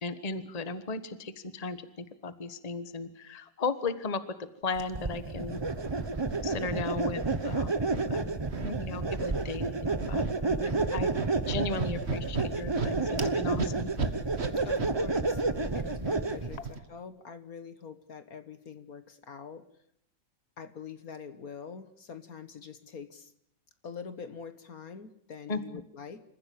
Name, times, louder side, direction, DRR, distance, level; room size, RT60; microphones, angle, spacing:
voice 1, 0.0-5.6 6.4-7.7 8.1-8.2 8.6-11.1 11.5-13.9 25.5-25.8, left 3 dB, 25° left, 12 dB, 1.3 m, -36 dB
sound 1, 4.7-4.8 5.4-6.9 7.2-8.0 8.5-8.7 9.1-9.5 9.8-10.3 10.6-16.8, right 5 dB, 35° right, 1.7 m, -36 dB
sound 2, 4.9-16.6, right 3 dB, 20° right, 0.7 m, -30 dB
voice 2, 14.6-15.4 15.7-19.7 20.6-23.3 23.8-26.2, left 6 dB, 55° left, 11 dB, 1.7 m, -44 dB
28.0 x 15.0 x 8.6 m, 0.71 s
omnidirectional pair, 2.0 m